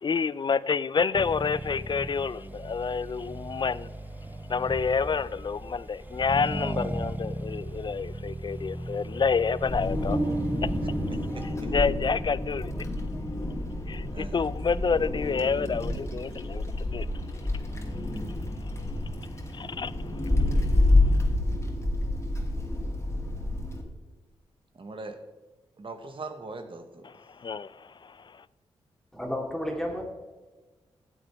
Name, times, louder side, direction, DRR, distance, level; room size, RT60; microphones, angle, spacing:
voice 1, 0.0-3.9 4.5-10.2 10.6-10.7 11.7-12.9 13.9-17.5 18.3-19.2 19.5-21.3 27.0-28.5, left 5 dB, 45° left, 0.4 m, -29 dB
Accelerating revving vroom, 1.1-11.5, right 1 dB, 15° right, 1.0 m, -37 dB
Wind, 9.6-23.8, left 2 dB, 25° left, 2.6 m, -28 dB
Bass guitar, 10.1-12.7, right 3 dB, 65° right, 1.6 m, -36 dB
voice 2, 11.1-11.7 14.1-14.4 24.7-25.2 25.8-27.1, right 3 dB, 50° right, 1.3 m, -41 dB
voice 3, 29.1-30.0, left 1 dB, 5° left, 2.5 m, -31 dB
13.0 x 8.0 x 3.5 m
supercardioid pair, 45°, 11 cm